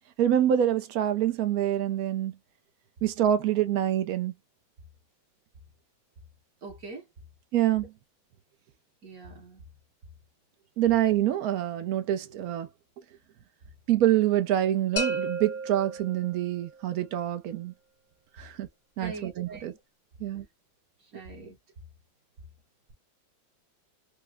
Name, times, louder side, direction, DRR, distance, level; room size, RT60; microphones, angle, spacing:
voice 1, 0.2-2.3 3.0-4.3 7.5-7.9 10.8-12.7 13.9-17.7 18.4-18.7 19.0-19.7 20.2-20.4, right 11 dB, 75° right, 0.8 m, -26 dB
voice 2, 6.6-7.0 9.0-9.6 19.0-19.7 21.1-21.6, right 3 dB, 55° right, 1.3 m, -42 dB
sound 1, 15.0-16.8, right 2 dB, 25° left, 0.6 m, -33 dB
4.8 x 2.1 x 2.2 m
omnidirectional pair, 2.2 m